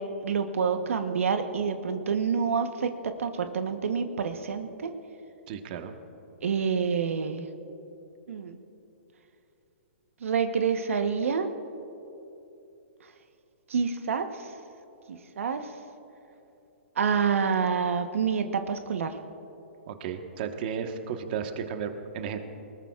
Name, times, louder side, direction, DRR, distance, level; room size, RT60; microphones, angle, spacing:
voice 1, 0.0-4.9 6.4-7.5 8.3-8.6 10.2-11.5 13.7-14.5 15.1-15.7 17.0-19.2, right 6 dB, 85° right, 7 dB, 1.0 m, -28 dB
voice 2, 5.5-5.9 19.9-22.4, right 7 dB, 45° right, 6 dB, 1.2 m, -34 dB
23.5 x 20.0 x 2.4 m, 2.9 s
hypercardioid pair, 155°, 7 cm